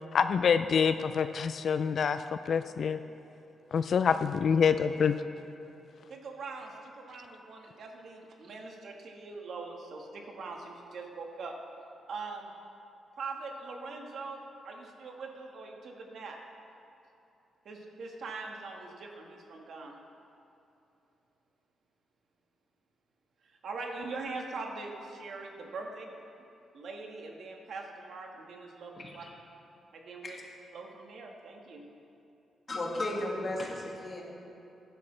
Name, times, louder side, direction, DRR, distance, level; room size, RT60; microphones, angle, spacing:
voice 1, 0.1-3.0 3.7-5.1, left 6 dB, 55° left, 10 dB, 0.3 m, -26 dB
voice 2, 3.7-4.2 6.1-11.6 12.1-12.5 13.1-16.4 17.6-20.0 23.4-26.1 26.7-29.3 29.9-30.4 30.7-31.9, right 3 dB, 65° right, 1 dB, 1.5 m, -42 dB
voice 3, 29.0-29.3 30.2-30.4 32.7-34.2, left 1 dB, 35° left, -2 dB, 2.0 m, -35 dB
15.5 x 11.5 x 3.3 m, 2.8 s
cardioid pair, 115°, 0 cm